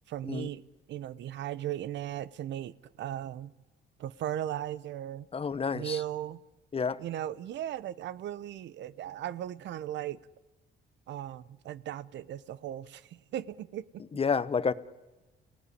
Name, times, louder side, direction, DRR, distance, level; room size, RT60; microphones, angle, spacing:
voice 1, 0.1-0.6 0.9-3.5 4.0-5.3 5.7-6.4 7.0-10.2 11.1-14.0, right 11 dB, 80° right, 0.8 m, -37 dB
voice 2, 5.3-6.0 6.7-7.0 14.1-14.7, left 5 dB, 30° left, 0.9 m, -29 dB
29.0 x 17.5 x 9.9 m
cardioid pair, 110°, 18 cm